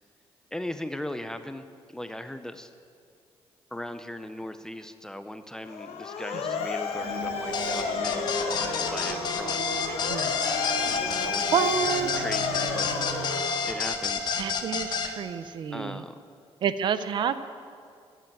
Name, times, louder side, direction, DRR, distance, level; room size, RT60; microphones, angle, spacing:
voice 1, 0.5-2.7 3.7-9.7 11.1-11.5 12.2-12.9 13.3-14.4 15.7-16.2, left 1 dB, 5° left, 9 dB, 0.5 m, -38 dB
Motor vehicle (road) / Siren, 5.6-14.2, left 6 dB, 85° left, 1.3 m, -33 dB
sound 1, 6.9-13.3, right 2 dB, 70° right, 2.7 m, -37 dB
sound 2, 7.5-15.1, left 5 dB, 45° left, 1.1 m, -29 dB
voice 2, 9.9-10.3 11.5-12.3 14.4-16.0 16.6-17.4, right 7 dB, 50° right, 12 dB, 0.6 m, -29 dB
14.0 x 7.6 x 9.1 m, 2.2 s
cardioid pair, 175°, 10 cm